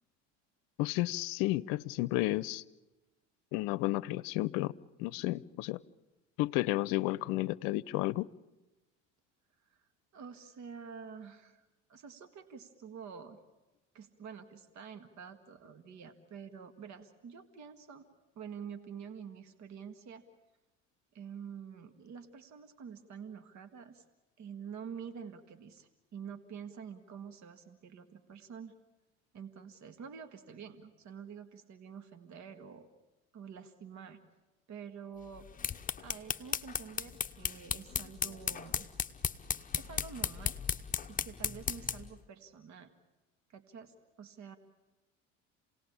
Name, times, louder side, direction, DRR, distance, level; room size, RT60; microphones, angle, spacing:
voice 1, 0.8-2.6 3.5-4.7 5.0-5.8 6.4-8.3, left 18 dB, 70° left, 20 dB, 0.7 m, -32 dB
voice 2, 10.1-11.6 11.9-13.4 13.9-18.1 18.4-20.2 21.1-24.0 24.4-28.7 29.3-32.9 33.3-34.2 34.7-35.5 36.0-38.9 39.8-40.6 41.1-42.9 43.5-44.6, right 7 dB, 50° right, 9 dB, 1.9 m, -48 dB
sound 1, 35.3-42.1, left 7 dB, 20° left, 1.0 m, -36 dB
28.0 x 18.5 x 8.7 m, 1.1 s
hypercardioid pair, 75°, 36 cm